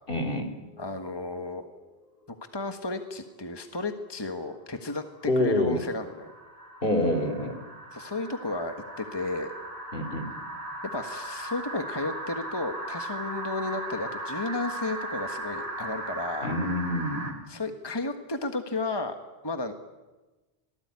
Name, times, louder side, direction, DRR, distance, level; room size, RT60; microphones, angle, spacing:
voice 1, 0.1-0.5 5.3-5.8 6.8-7.6 9.9-10.3 16.4-17.4, left 1 dB, 60° left, 6 dB, 3.3 m, -27 dB
sound 1, 0.6-2.2 2.6-3.3 4.9-17.3, right 1 dB, 80° right, 4.1 m, -38 dB
voice 2, 0.8-1.6 2.5-5.0 5.3-6.3 7.9-9.6 10.9-16.5 17.5-19.1 19.4-19.7, left 2 dB, 25° left, 6 dB, 1.6 m, -33 dB
27.0 x 19.0 x 9.7 m, 1.2 s
omnidirectional pair, 1.0 m